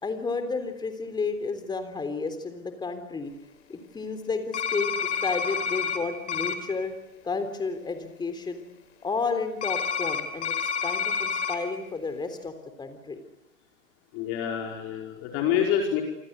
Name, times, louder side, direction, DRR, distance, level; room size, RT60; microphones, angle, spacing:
voice 1, 0.0-3.3 3.7-5.0 5.2-6.9 7.2-8.6 9.0-10.6 10.8-12.5 12.8-13.2, left 4 dB, 10° left, 8 dB, 3.6 m, -31 dB
sound 1, 4.5-6.0 6.3-6.5 9.6-11.6, left 6 dB, 60° left, 4.5 m, -28 dB
voice 2, 14.1-16.0, left 8 dB, 35° left, 1 dB, 5.1 m, -27 dB
28.5 x 25.0 x 8.1 m, 0.92 s
hypercardioid pair, 115°, 40 cm